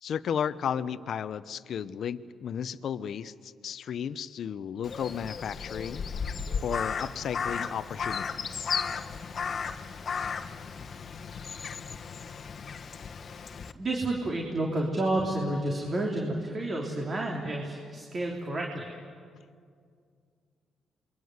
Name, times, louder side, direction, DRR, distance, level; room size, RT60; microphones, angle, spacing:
voice 1, 0.0-6.0 6.6-8.8, left 8 dB, 60° left, 14 dB, 0.8 m, -34 dB
Crow, 4.8-13.7, left 6 dB, 45° left, 1.3 m, -35 dB
voice 2, 13.7-18.9, right 1 dB, 35° right, 0 dB, 3.5 m, -30 dB
28.0 x 23.0 x 8.1 m, 2.2 s
cardioid pair, 90°, 0 cm